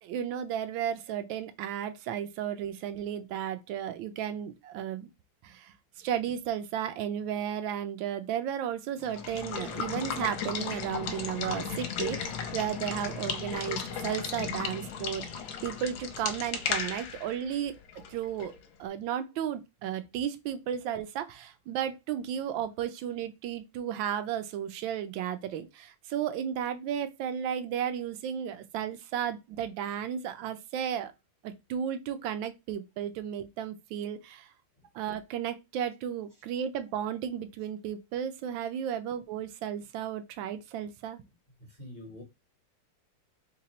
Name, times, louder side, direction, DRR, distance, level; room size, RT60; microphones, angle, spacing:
voice 1, 0.0-5.1 5.4-15.3 15.6-17.8 18.1-18.5 18.8-31.1 31.4-34.5 34.9-41.2, right 9 dB, 75° right, 1.2 m, -34 dB
Water / Water tap faucet / Liquid, 9.0-18.7, left 6 dB, 70° left, 1.4 m, -35 dB
voice 2, 41.7-42.2, left 1 dB, 30° left, 0.8 m, -45 dB
4.0 x 2.2 x 4.1 m
omnidirectional pair, 2.3 m